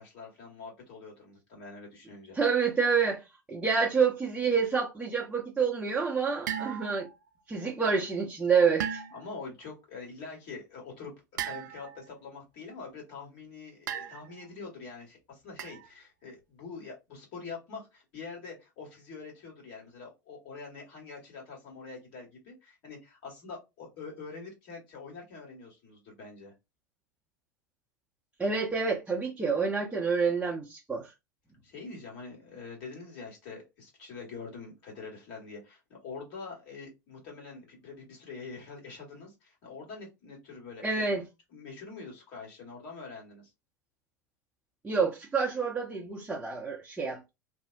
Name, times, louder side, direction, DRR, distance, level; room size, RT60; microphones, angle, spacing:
voice 1, 0.0-2.4 9.1-11.1 11.4-26.5 31.6-41.1 41.5-43.5, left 4 dB, 50° left, 1.6 m, -45 dB
voice 2, 2.3-7.1 7.5-9.0 28.4-31.1 40.8-41.2 44.8-47.3, right 5 dB, 10° right, 0.6 m, -28 dB
sound 1, 6.5-7.2 8.8-9.4 11.4-12.1 13.9-14.5 15.6-15.9, right 9 dB, 70° right, 0.4 m, -36 dB
2.7 x 2.0 x 2.5 m
figure-of-eight pair, 85°, 10 cm